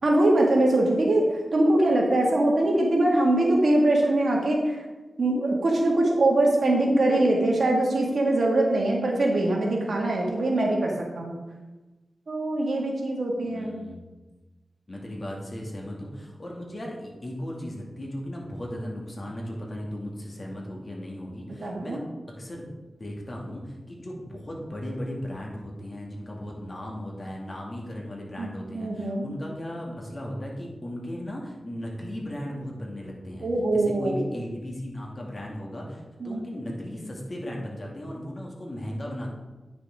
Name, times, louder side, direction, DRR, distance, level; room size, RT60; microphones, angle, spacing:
voice 1, 0.0-1.3 1.5-4.8 5.2-11.4 12.3-13.7 21.6-22.0 28.4-29.2 33.4-34.3 36.2-36.5, right 1 dB, 70° right, -1 dB, 2.0 m, -23 dB
voice 2, 13.5-14.1 14.9-22.0 22.4-22.7 23.0-33.5 33.7-39.3, equal, 40° left, -2 dB, 2.3 m, -36 dB
9.5 x 6.6 x 3.7 m, 1.2 s
cardioid pair, 55°, 0 cm